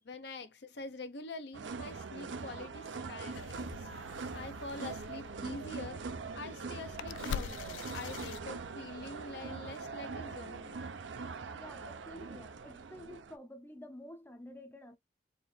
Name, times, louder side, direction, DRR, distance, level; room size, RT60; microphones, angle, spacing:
voice 1, 0.0-3.9 4.3-6.0 6.4-10.9, left 3 dB, 65° left, 0.7 m, -45 dB
sound 1, 1.5-13.4, right 4 dB, 85° right, 0.6 m, -42 dB
sound 2, 3.3-9.0, left 8 dB, 90° left, 0.3 m, -45 dB
voice 2, 11.5-15.0, left 1 dB, 10° left, 0.6 m, -50 dB
4.3 x 3.3 x 3.2 m
head